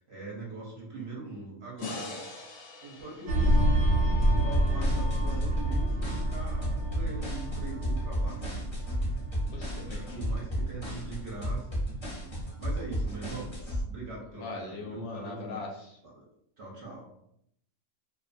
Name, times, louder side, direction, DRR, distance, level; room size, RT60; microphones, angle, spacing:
voice 1, 0.0-2.3 2.8-3.9 4.1-9.1 9.8-11.8 12.2-15.7 16.0-16.2 16.6-17.2, right 3 dB, 60° right, -3 dB, 0.8 m, -42 dB
sound 1, 1.8-5.0, left 3 dB, 90° left, 1.0 m, -43 dB
sound 2, 3.3-12.3 12.7-12.9, right 1 dB, 85° right, 1.0 m, -29 dB
sound 3, 4.2-13.8, equal, 25° left, 0.6 m, -33 dB
voice 2, 9.5-10.2 14.4-16.0, left 3 dB, 65° left, -1 dB, 0.8 m, -40 dB
2.4 x 2.3 x 2.5 m, 0.74 s
omnidirectional pair, 1.4 m